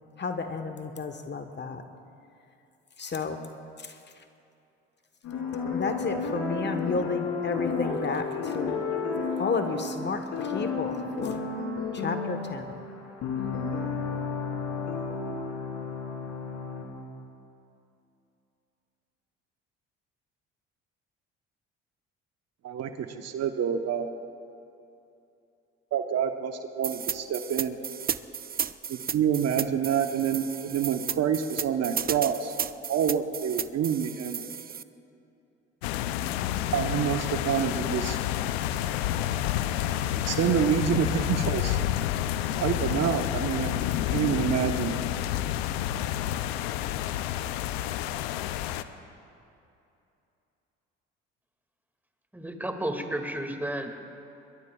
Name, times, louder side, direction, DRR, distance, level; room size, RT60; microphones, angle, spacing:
voice 1, 0.2-1.8 3.0-3.4 3.8-4.0 5.7-8.8 9.4-11.4 11.9-12.7, left 4 dB, 35° left, 7 dB, 1.3 m, -32 dB
sound 1, 5.2-16.8, left 4 dB, 70° left, 3.2 m, -32 dB
voice 2, 22.6-24.1 25.9-27.8 28.9-32.5 32.9-34.4 36.7-38.2 40.2-41.8 42.4-43.8 44.1-45.0, right 8 dB, 55° right, 6 dB, 1.0 m, -27 dB
sound 2, 26.8-34.8, right 8 dB, 30° right, 0.5 m, -33 dB
sound 3, 35.8-48.8, left 12 dB, 90° left, 0.5 m, -29 dB
voice 3, 52.3-54.1, right 1 dB, 5° right, 4 dB, 2.1 m, -32 dB
21.5 x 21.5 x 2.4 m, 2.7 s
hypercardioid pair, 60°, 30 cm